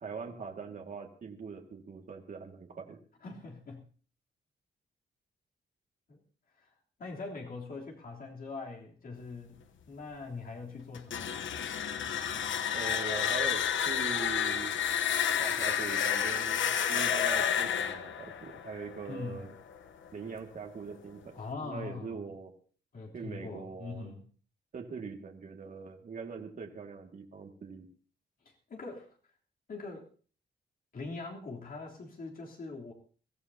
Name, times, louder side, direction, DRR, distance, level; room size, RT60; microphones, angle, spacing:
voice 1, 0.0-3.0 12.7-14.8 15.4-19.5 20.1-22.5 23.1-24.1 24.7-27.9, right 5 dB, 45° right, 2 dB, 2.0 m, -42 dB
voice 2, 3.2-3.9 6.1-6.2 7.0-11.5 19.1-19.5 21.3-22.3 22.9-24.2 28.7-29.1 29.7-30.1 30.9-32.9, left 3 dB, 50° left, -1 dB, 3.3 m, -42 dB
sound 1, 10.9-19.8, left 8 dB, 90° left, 1.0 m, -30 dB
23.0 x 14.5 x 2.8 m, 0.41 s
wide cardioid pair, 175°, 19 cm